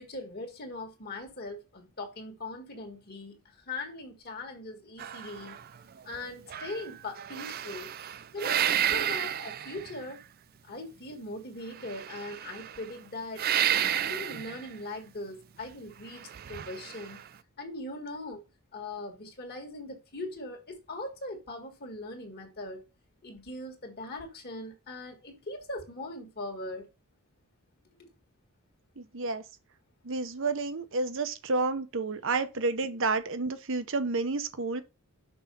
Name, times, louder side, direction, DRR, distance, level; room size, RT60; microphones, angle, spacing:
voice 1, 0.0-5.6 6.0-7.9 8.3-10.2 10.6-17.2 17.6-18.4 18.7-22.8 23.2-26.9 28.0-28.1, left 2 dB, 45° left, 1.6 m, -40 dB
sound 1, 5.0-6.2 6.5-10.2 11.8-12.9 13.4-14.7 16.2-17.3, right 10 dB, 40° right, 0.4 m, -31 dB
voice 2, 29.0-29.4 30.0-34.8, right 3 dB, 60° right, 0.8 m, -30 dB
6.1 x 4.7 x 5.3 m
head